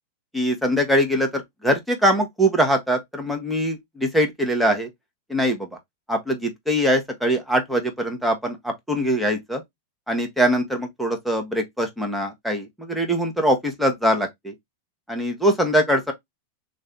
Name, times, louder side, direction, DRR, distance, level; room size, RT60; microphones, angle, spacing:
voice 1, 0.3-4.9 5.3-5.7 6.1-9.6 10.1-14.5 15.1-16.1, equal, ahead, 1.1 m, -22 dB
3.2 x 2.6 x 3.7 m
hypercardioid pair, 115°, 0 cm